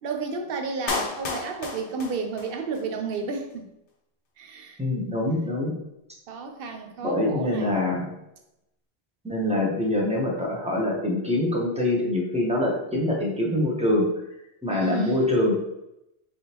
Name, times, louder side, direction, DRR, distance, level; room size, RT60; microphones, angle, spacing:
voice 1, 0.0-3.7 4.4-4.8 6.3-7.9 14.7-15.4, right 4 dB, 65° right, 5 dB, 0.8 m, -32 dB
Clapping, 0.9-2.9 3.1-3.2, left 3 dB, 65° left, 0.8 m, -32 dB
voice 2, 4.8-5.7 7.0-8.1 9.2-14.1 14.6-15.5, left 1 dB, 5° right, -3 dB, 0.8 m, -24 dB
3.9 x 3.5 x 2.9 m, 0.87 s
omnidirectional pair, 1.1 m